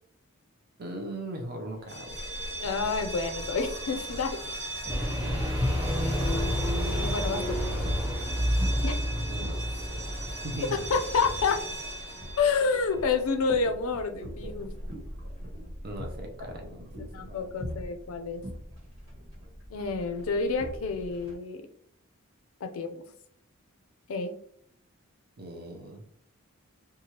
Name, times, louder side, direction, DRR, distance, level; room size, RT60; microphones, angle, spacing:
voice 1, 0.8-2.2 5.2-5.7 8.7-8.9 9.3-10.1 10.4-10.9 15.8-17.5 25.4-26.0, right 1 dB, 45° right, 3 dB, 0.4 m, -40 dB
sound 1, 1.8-13.5, right 1 dB, 15° left, 1.4 m, -39 dB
sound 2, 2.1-21.3, equal, 70° right, 1.2 m, -42 dB
voice 2, 2.6-4.4 6.9-7.6 8.8-9.0 10.9-11.6 12.4-14.7 17.1-18.4 19.7-21.7 22.6-23.0 24.1-24.3, left 4 dB, 80° left, 6 dB, 0.4 m, -29 dB
sound 3, 4.9-11.5, equal, 15° right, 1.5 m, -30 dB
3.0 x 2.3 x 2.8 m, 0.66 s
head